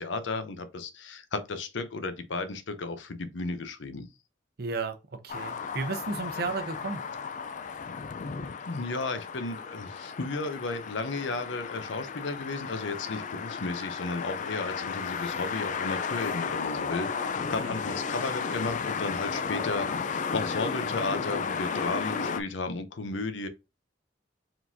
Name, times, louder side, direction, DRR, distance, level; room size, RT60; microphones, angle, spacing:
voice 1, 0.0-4.1 8.7-17.1 17.5-23.5, left 3 dB, 80° left, 0.7 m, -34 dB
voice 2, 4.6-7.0 17.6-17.7, right 3 dB, 55° right, 0.7 m, -33 dB
sound 1, 5.3-22.4, left 5 dB, 40° left, 0.4 m, -34 dB
4.8 x 3.8 x 2.7 m
head